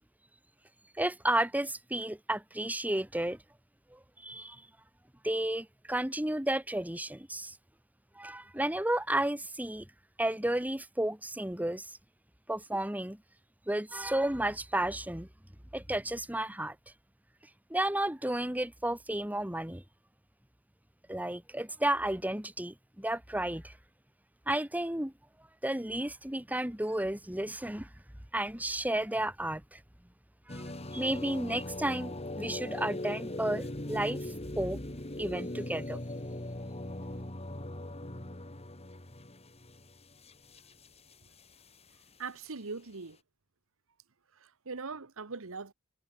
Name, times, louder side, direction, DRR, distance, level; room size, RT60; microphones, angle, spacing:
voice 1, 1.0-3.4 3.9-4.6 5.2-7.5 8.2-9.9 10.2-11.9 12.5-13.2 13.7-15.3 15.7-16.8 17.7-19.8 21.1-23.7 24.5-25.1 25.6-27.9 28.3-29.8 30.5-30.6 30.9-34.3 34.6-34.8 35.2-36.0, right 1 dB, 5° right, 1.9 m, -32 dB
sound 1, 30.5-41.4, left 1 dB, 30° left, 2.6 m, -40 dB
voice 2, 42.2-43.2 44.4-45.7, right 4 dB, 65° right, 1.2 m, -41 dB
head